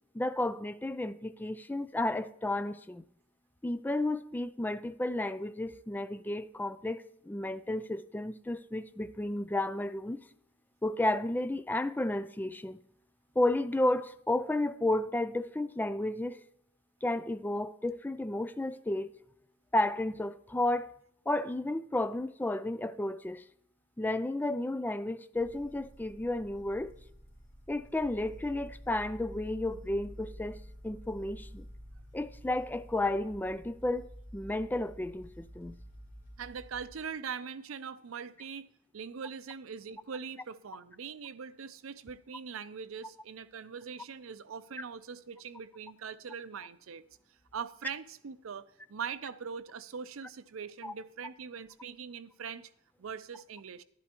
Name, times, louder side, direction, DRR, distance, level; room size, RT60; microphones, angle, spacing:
voice 1, 0.1-3.0 3.6-10.2 10.8-12.8 13.4-16.4 17.0-19.1 19.7-20.9 21.3-23.4 24.0-26.9 27.7-30.6 30.8-31.7 32.1-34.0 34.3-35.7 50.8-50.9, left 1 dB, 10° left, 0.4 m, -32 dB
sound 1, 25.3-36.9, equal, 50° left, 4.2 m, -50 dB
voice 2, 36.4-47.0 47.5-52.7 53.0-53.8, right 6 dB, 85° right, 0.5 m, -42 dB
11.5 x 11.5 x 3.0 m
head